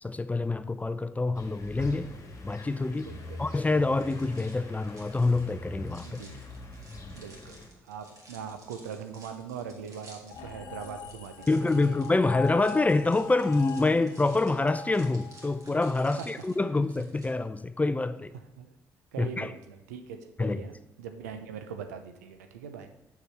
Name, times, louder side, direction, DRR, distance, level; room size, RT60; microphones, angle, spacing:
voice 1, 0.0-2.1 2.4-3.1 3.4-6.2 11.5-18.3 19.2-19.5 20.4-20.7, left 3 dB, 15° left, 0.5 m, -26 dB
sound 1, 1.3-7.7, left 2 dB, 40° left, 1.6 m, -43 dB
voice 2, 3.0-3.4 6.0-6.4 7.1-7.6 7.9-12.0 16.2-16.3 18.6-18.7 19.1-22.9, right 7 dB, 85° right, 0.6 m, -41 dB
sound 2, 3.5-17.3, right 2 dB, 40° right, 2.3 m, -55 dB
sound 3, 10.3-15.7, left 7 dB, 65° left, 1.0 m, -41 dB
6.8 x 4.9 x 5.8 m
hypercardioid pair, 45°, 8 cm